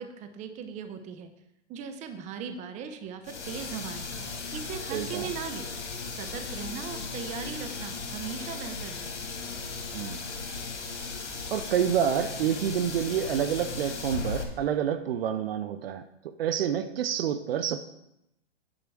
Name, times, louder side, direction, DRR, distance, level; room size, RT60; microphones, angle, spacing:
voice 1, 0.0-1.3 1.7-4.1 4.5-5.7 6.1-9.1, right 6 dB, 20° right, 8 dB, 0.7 m, -38 dB
sound 1, 3.2-14.4, left 4 dB, 85° left, 1.9 m, -37 dB
voice 2, 4.9-5.3 9.9-10.3 11.5-17.8, right 9 dB, 55° right, 11 dB, 0.7 m, -28 dB
9.8 x 4.9 x 6.1 m, 0.83 s
hypercardioid pair, 130°, 35 cm